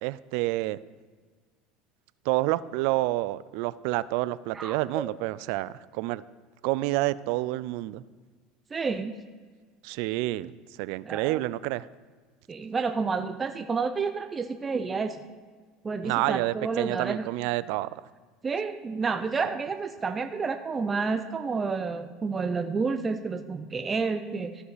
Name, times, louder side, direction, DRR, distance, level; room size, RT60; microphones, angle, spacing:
voice 1, 0.0-0.8 2.3-6.2 6.6-8.0 9.8-11.9 16.0-17.9, right 18 dB, 70° right, 18 dB, 0.3 m, -28 dB
voice 2, 4.5-5.1 8.7-9.1 11.0-11.4 12.5-15.2 15.8-17.3 18.4-24.6, right 4 dB, 25° right, 8 dB, 0.5 m, -30 dB
13.5 x 5.4 x 4.0 m, 1.5 s
supercardioid pair, 90°, 0 cm